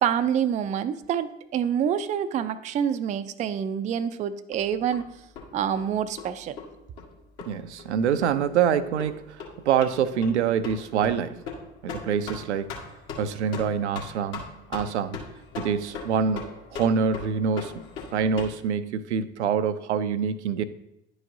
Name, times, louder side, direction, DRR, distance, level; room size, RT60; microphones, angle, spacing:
voice 1, 0.0-5.1 5.5-6.6, right 8 dB, 25° right, 12 dB, 0.3 m, -27 dB
sound 1, 4.5-18.5, left 4 dB, 60° left, 1.6 m, -40 dB
voice 2, 7.5-11.4 11.8-12.7 13.2-14.4 14.7-15.2 15.6-17.8 18.1-20.6, right 7 dB, 80° right, 11 dB, 0.5 m, -25 dB
10.5 x 4.8 x 2.7 m, 0.84 s
figure-of-eight pair, 65°, 34 cm